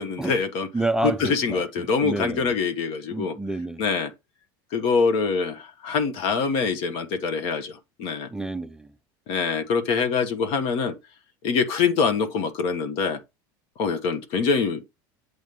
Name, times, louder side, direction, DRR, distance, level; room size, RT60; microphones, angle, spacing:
voice 1, 0.0-0.7 1.0-3.4 3.8-4.1 4.7-8.3 9.3-10.9 11.4-13.2 13.8-14.8, left 5 dB, 60° left, 1.2 m, -24 dB
voice 2, 0.7-2.5 3.1-3.8 8.3-8.9, right 2 dB, 5° right, 0.3 m, -29 dB
8.1 x 3.1 x 5.3 m
supercardioid pair, 135°, 11 cm